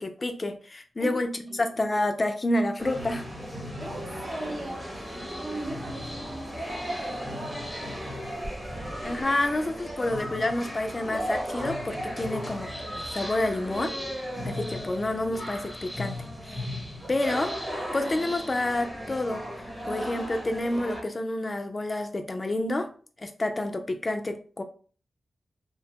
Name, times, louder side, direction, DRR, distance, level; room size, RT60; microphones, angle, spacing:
voice 1, 0.0-1.3 1.6-3.3 9.0-14.0 14.4-16.2 17.1-17.6 17.9-19.5 19.8-22.9 23.2-24.6, left 1 dB, 25° left, 0.3 m, -29 dB
voice 2, 1.0-1.7 3.8-7.2, right 2 dB, 45° right, 0.6 m, -40 dB
sound 1, 2.8-21.0, equal, 5° right, 0.7 m, -35 dB
sound 2, 8.2-11.3, right 1 dB, 85° right, 0.9 m, -45 dB
2.7 x 2.1 x 2.7 m
wide cardioid pair, 150°, 0 cm